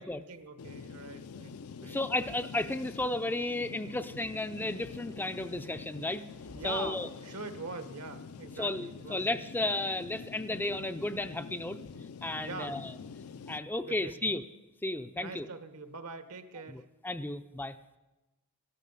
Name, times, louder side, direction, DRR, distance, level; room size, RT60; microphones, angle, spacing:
voice 1, 0.3-1.5 1.8-2.0 6.5-9.2 12.4-12.8 13.8-14.3 15.1-16.8, right 3 dB, 75° right, 9 dB, 1.2 m, -43 dB
sound 1, 0.6-13.6, left 5 dB, 70° left, 0.5 m, -46 dB
voice 2, 1.8-6.2 6.6-7.1 8.6-11.8 12.2-12.9 13.5-14.4 14.8-15.5 16.7-17.8, left 2 dB, 10° left, 10 dB, 0.4 m, -33 dB
sound 2, 6.3-7.0 8.7-8.8 10.7-10.8 11.7-11.8, left 1 dB, 85° left, 4.6 m, -54 dB
14.5 x 12.5 x 5.5 m, 1.1 s
head